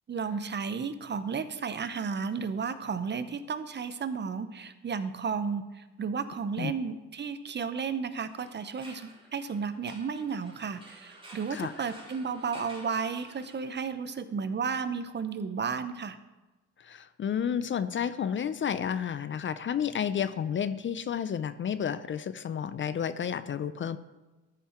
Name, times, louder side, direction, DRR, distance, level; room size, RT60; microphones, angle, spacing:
voice 1, 0.1-16.2, right 5 dB, 35° right, 12 dB, 0.7 m, -33 dB
sound 1, 8.3-14.0, right 1 dB, 15° right, 3.2 m, -51 dB
voice 2, 16.8-24.0, left 8 dB, 40° left, 14 dB, 0.5 m, -31 dB
13.5 x 5.6 x 4.4 m, 1.1 s
cardioid pair, 90°, 30 cm